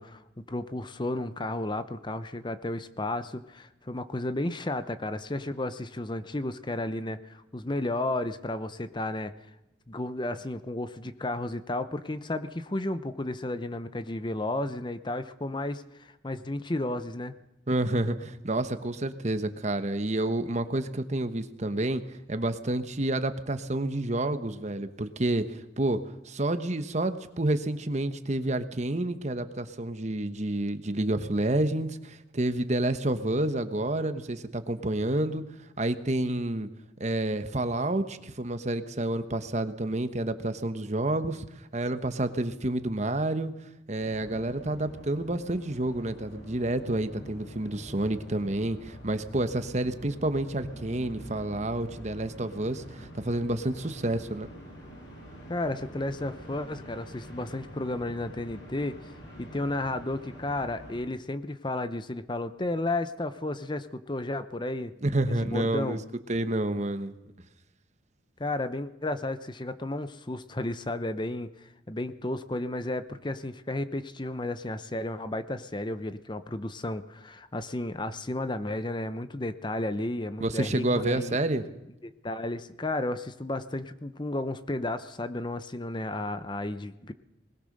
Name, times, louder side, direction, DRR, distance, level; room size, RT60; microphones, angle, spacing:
voice 1, 0.0-9.3 9.9-17.3 55.5-58.9 59.4-64.9 65.4-66.0 68.4-81.4 82.0-87.1, left 2 dB, 25° left, 11 dB, 0.8 m, -33 dB
voice 2, 17.7-35.4 35.8-36.7 37.0-41.5 41.7-43.5 43.9-54.5 65.0-66.0 66.3-67.1 80.4-81.6, right 1 dB, 40° right, 10 dB, 1.1 m, -29 dB
sound 1, 44.0-61.0, equal, 85° left, 7.8 m, -46 dB
20.5 x 19.0 x 6.6 m, 0.93 s
head